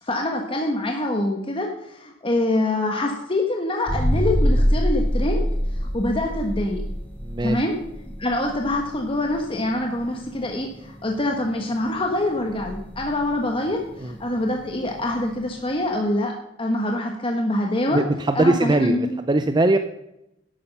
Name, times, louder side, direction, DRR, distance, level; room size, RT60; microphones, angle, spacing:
voice 1, 0.0-6.8 7.4-7.7 8.2-16.3 16.6-18.0 18.3-19.2, left 1 dB, 25° left, 2 dB, 1.3 m, -25 dB
sound 1, 3.9-15.5, equal, 10° left, 2.1 m, -26 dB
voice 2, 7.2-7.6 14.0-14.2 17.9-19.8, right 2 dB, 20° right, 8 dB, 0.5 m, -21 dB
11.5 x 8.7 x 5.5 m, 0.84 s
head